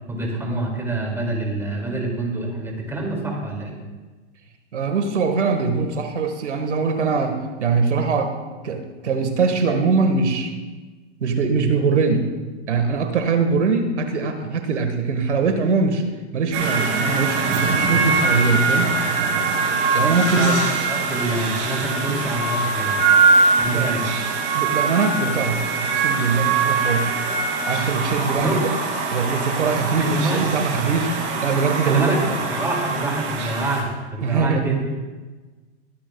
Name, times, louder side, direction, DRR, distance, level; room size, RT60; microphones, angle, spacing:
voice 1, 0.1-3.8 20.4-23.0 23.6-24.0 28.4-28.6 30.0-30.5 31.8-34.9, right 2 dB, 5° right, 0 dB, 2.3 m, -26 dB
voice 2, 4.7-8.4 8.6-10.5 11.2-12.3 12.7-16.0 16.3-19.0 19.9-20.5 23.7-23.9 24.5-27.2 27.7-28.5 29.1-32.0 34.2-34.8, right 4 dB, 90° right, 6 dB, 1.6 m, -22 dB
sound 1, 16.5-33.8, right 4 dB, 35° right, 2.8 m, -22 dB
21.0 x 10.0 x 2.3 m, 1.3 s
hypercardioid pair, 135°, 34 cm